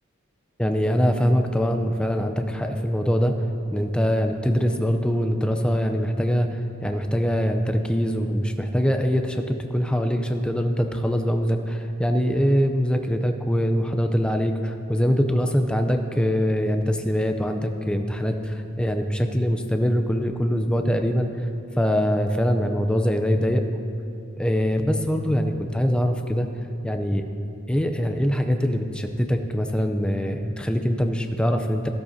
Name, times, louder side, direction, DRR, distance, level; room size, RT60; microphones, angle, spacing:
voice 1, 0.6-3.3 3.7-21.5 21.8-23.6 24.4-26.5 26.8-27.2 27.7-31.9, equal, 5° left, 5 dB, 0.4 m, -23 dB
13.5 x 13.0 x 2.7 m, 2.6 s
head